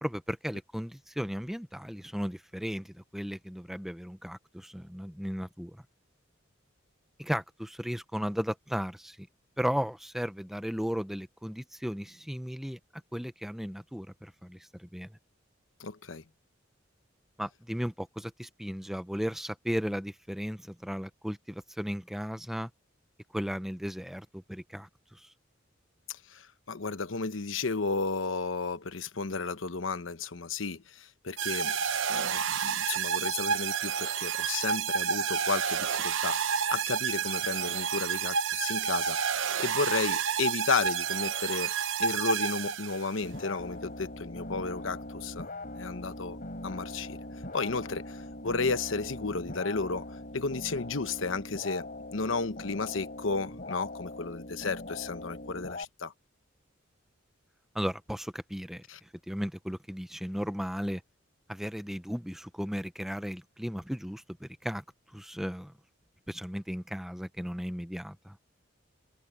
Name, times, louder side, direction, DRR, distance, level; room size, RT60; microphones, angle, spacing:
voice 1, 0.0-5.8 7.2-9.3 9.6-15.2 17.4-22.7 23.3-25.3 57.7-61.0 61.5-65.7 66.3-68.4, equal, ahead, 0.7 m, -35 dB
voice 2, 15.8-16.2 26.1-31.8 32.1-39.3 39.6-41.7 42.0-45.5 45.8-47.2 47.5-50.0 50.3-56.1 58.9-59.0, left 4 dB, 75° left, 1.0 m, -33 dB
sound 1, 31.4-43.2, right 7 dB, 70° right, 0.8 m, -30 dB
sound 2, 43.2-55.8, left 1 dB, 45° left, 6.2 m, -41 dB
head